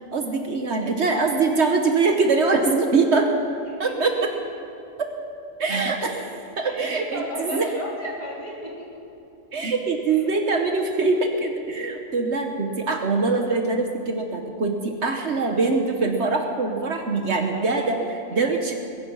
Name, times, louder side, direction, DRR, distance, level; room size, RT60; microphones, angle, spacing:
voice 1, 0.0-3.3 3.8-4.3 5.6-6.1 6.6-7.7 9.5-18.7, right 3 dB, 60° right, 4 dB, 1.4 m, -23 dB
voice 2, 3.6-4.2 5.7-5.8 6.2-6.3 6.6-9.0 10.1-10.2 10.5-10.6 17.5-17.9 18.3-18.4, equal, 30° left, -4 dB, 3.4 m, -35 dB
21.5 x 10.5 x 5.6 m, 2.8 s
omnidirectional pair, 1.4 m